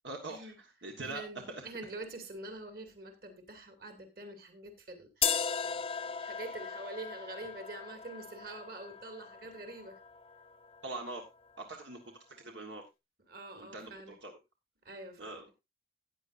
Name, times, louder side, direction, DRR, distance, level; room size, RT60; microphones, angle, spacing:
voice 1, 0.0-1.7 10.8-11.2 11.6-12.0 12.4-12.8 13.5-14.3 15.2-15.5, right 2 dB, 85° right, 2 dB, 1.5 m, -43 dB
voice 2, 1.0-10.0 13.3-14.1 14.8-15.4, right 2 dB, 55° right, 7 dB, 2.5 m, -46 dB
sound 1, 5.2-11.2, left 7 dB, 30° left, 0.7 m, -37 dB
14.5 x 9.1 x 2.6 m, 0.22 s
head